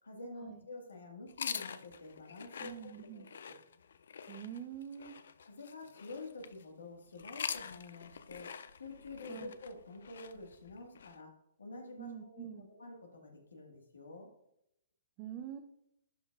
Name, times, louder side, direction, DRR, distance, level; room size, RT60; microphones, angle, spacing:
voice 1, 0.0-3.5 5.4-8.5 8.8-11.3 11.6-12.5 12.8-14.3, left 2 dB, 90° left, 2 dB, 1.5 m, -48 dB
sound 1, 1.3-6.6 7.1-11.2, left 7 dB, 70° left, 0.4 m, -45 dB
voice 2, 2.6-3.2 4.3-5.2 9.3-9.5 12.0-12.7 15.2-15.6, right 9 dB, 35° right, 5 dB, 0.5 m, -45 dB
11.0 x 4.5 x 2.4 m, 0.78 s
hypercardioid pair, 140°, 0 cm